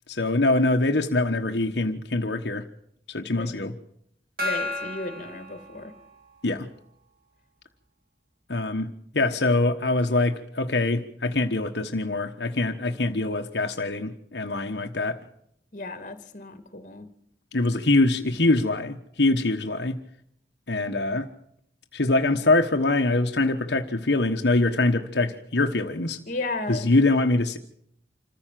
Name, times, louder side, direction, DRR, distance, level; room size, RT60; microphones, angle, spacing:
voice 1, 0.1-2.6 3.1-3.7 6.4-6.7 8.5-15.2 17.5-20.0 20.7-21.3 21.9-26.2 26.7-27.6, left 2 dB, 70° left, 4 dB, 1.3 m, -24 dB
voice 2, 3.3-3.6 4.4-5.9 15.7-17.1 26.3-26.9, left 2 dB, 45° left, 9 dB, 2.4 m, -34 dB
Gong, 4.4-6.4, left 2 dB, 55° right, 4.3 m, -33 dB
27.0 x 15.0 x 7.6 m, 0.73 s
head